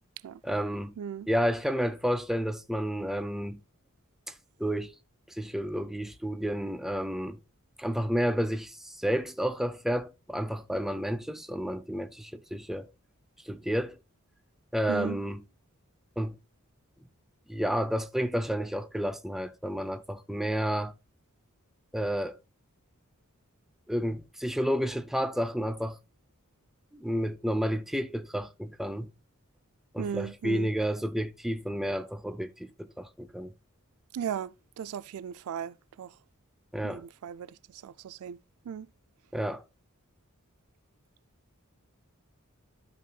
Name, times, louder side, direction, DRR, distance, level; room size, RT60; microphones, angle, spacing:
voice 1, 0.4-0.9 1.3-3.6 4.3-4.4 4.6-4.9 5.3-7.4 7.8-12.9 13.5-14.0 14.7-15.4 16.2-16.4 17.5-20.9 21.9-22.4 23.9-26.0 26.9-29.1 29.9-33.5 36.7-37.1 39.3-39.6, equal, ahead, 0.5 m, -31 dB
voice 2, 1.0-1.3 14.9-15.2 30.0-30.7 34.1-34.5 34.8-36.1 36.8-37.5 37.7-38.4 38.7-38.9, right 8 dB, 90° right, 0.4 m, -36 dB
12.5 x 5.5 x 2.2 m
head